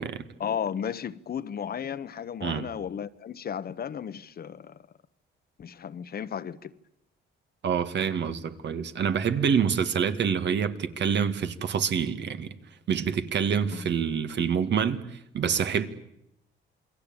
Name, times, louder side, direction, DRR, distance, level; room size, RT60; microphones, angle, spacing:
voice 1, 0.4-4.8 5.6-6.7 13.7-13.9, left 8 dB, 50° left, 1.2 m, -34 dB
voice 2, 7.6-12.5 12.9-15.9, right 7 dB, 60° right, 2.1 m, -27 dB
28.5 x 21.5 x 8.9 m
cardioid pair, 90°, 20 cm